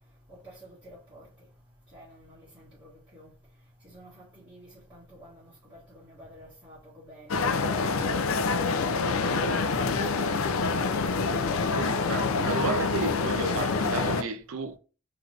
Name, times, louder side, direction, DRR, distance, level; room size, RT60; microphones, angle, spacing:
voice 1, 0.3-1.3 1.9-3.3 3.8-7.9 8.5-10.9, equal, 20° right, 1.6 m, -50 dB
sound 1, 7.3-14.2, left 4 dB, 70° left, 0.5 m, -26 dB
voice 2, 11.7-14.8, right 3 dB, 70° right, 0.5 m, -33 dB
3.9 x 3.2 x 3.2 m
head